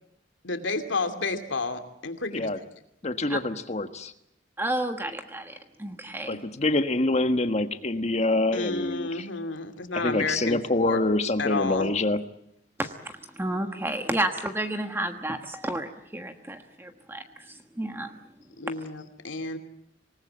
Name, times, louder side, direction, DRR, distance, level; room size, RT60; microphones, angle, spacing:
voice 1, 0.4-2.5 8.5-11.0 11.4-11.9 18.6-19.6, left 3 dB, 85° left, 8 dB, 2.6 m, -31 dB
voice 2, 3.0-4.1 6.3-9.3 9.9-12.2, left 2 dB, 35° left, 9 dB, 1.5 m, -26 dB
voice 3, 4.6-6.4 12.8-18.1, right 1 dB, 10° right, 6 dB, 1.3 m, -31 dB
26.0 x 19.5 x 8.8 m, 0.76 s
head